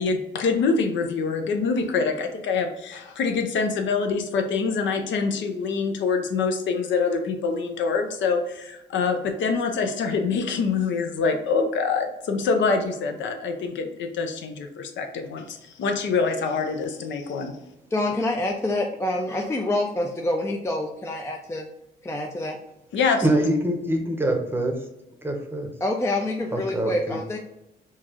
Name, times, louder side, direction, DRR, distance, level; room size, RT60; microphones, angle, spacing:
voice 1, 0.0-17.6 22.9-23.4, left 4 dB, 70° left, 5 dB, 0.6 m, -25 dB
voice 2, 17.9-21.7 22.0-22.6 25.8-27.4, left 1 dB, 15° left, 2 dB, 0.4 m, -26 dB
voice 3, 23.2-24.8 25.2-25.7 26.5-27.2, right 1 dB, 10° right, 3 dB, 0.8 m, -24 dB
4.5 x 2.4 x 2.9 m, 0.90 s
cardioid pair, 90°, 20 cm